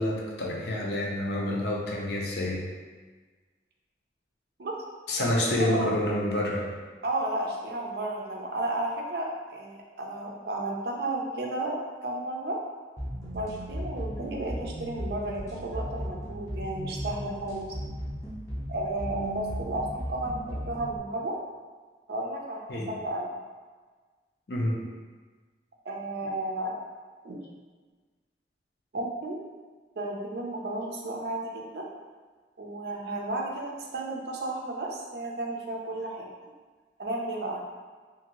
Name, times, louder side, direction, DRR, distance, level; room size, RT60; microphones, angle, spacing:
voice 1, 0.0-2.6 5.1-6.7 22.7-22.9 24.5-24.8, left 1 dB, 65° left, -2 dB, 0.5 m, -28 dB
voice 2, 7.0-11.8 12.0-12.6 13.3-17.8 18.7-21.4 22.1-23.3 25.9-26.8 27.2-27.4 28.9-29.4 30.0-31.8 32.6-36.3 37.0-37.6, right 2 dB, 60° right, -1 dB, 0.4 m, -33 dB
sound 1, 13.0-21.0, equal, 15° left, 0.5 m, -36 dB
2.7 x 2.5 x 2.9 m, 1.4 s
head